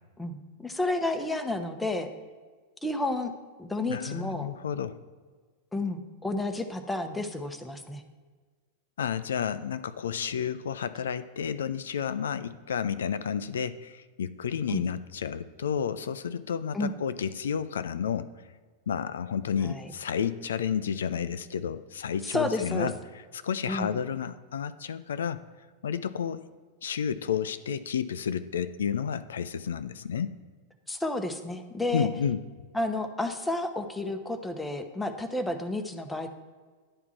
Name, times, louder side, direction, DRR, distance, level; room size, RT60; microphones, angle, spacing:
voice 1, 0.2-2.1 2.8-3.3 3.6-4.5 5.7-8.0 14.7-14.8 16.7-16.9 19.6-19.9 22.2-22.9 23.7-23.9 30.9-32.1 32.7-36.3, left 2 dB, 5° left, 5 dB, 0.8 m, -31 dB
voice 2, 3.9-5.0 9.0-18.3 18.9-22.9 23.3-25.5 25.8-26.4 26.8-30.3 31.9-32.4, left 7 dB, 65° left, 13 dB, 0.3 m, -31 dB
10.5 x 3.6 x 7.2 m, 1.5 s
figure-of-eight pair, 90°, 0 cm